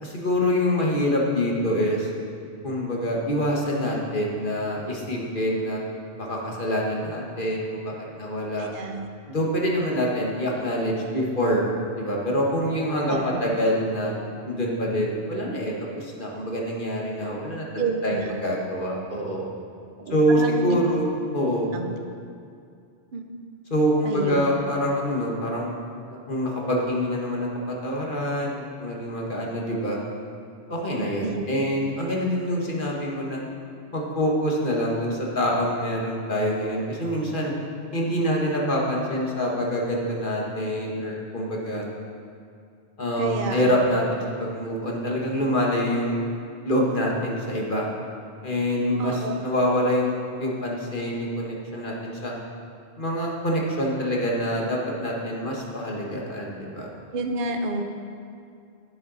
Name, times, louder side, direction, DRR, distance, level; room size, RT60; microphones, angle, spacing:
voice 1, 0.0-2.1 2.6-5.8 6.1-8.7 9.3-11.6 12.0-14.1 14.4-19.5 20.1-21.1 21.3-21.7 23.7-25.8 26.1-30.0 30.7-33.4 33.9-37.5 37.9-41.8 43.0-46.2 46.6-47.9 48.4-52.4 53.0-56.9, equal, 45° left, -2 dB, 1.7 m, -26 dB
voice 2, 8.6-9.0 13.1-13.6 17.8-18.3 20.0-20.8 21.7-21.9 23.1-23.2 24.0-24.4 31.2-31.4 43.2-43.7 49.0-49.4 57.1-57.8, right 3 dB, 50° right, 4 dB, 0.9 m, -29 dB
10.5 x 10.5 x 4.1 m, 2.4 s
omnidirectional pair, 1.2 m